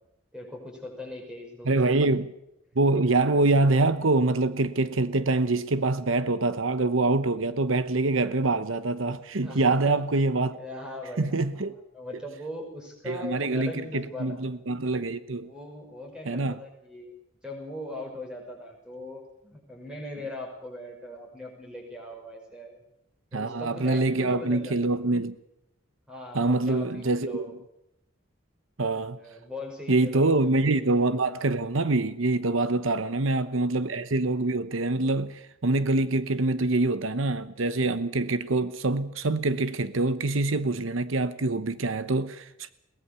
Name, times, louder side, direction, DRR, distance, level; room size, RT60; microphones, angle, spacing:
voice 1, 0.3-2.0 8.5-8.6 9.4-10.0 10.5-11.6 11.9-14.4 15.4-17.1 17.4-22.8 23.3-24.8 26.1-27.5 29.2-31.1 32.8-33.6, left 1 dB, 5° right, 6.1 m, -40 dB
voice 2, 1.6-2.3 2.8-10.6 11.2-11.7 13.1-15.5 16.2-16.6 23.3-25.4 26.3-27.4 28.8-29.2 29.9-42.7, right 2 dB, 80° right, 1.0 m, -25 dB
22.0 x 19.5 x 7.0 m
head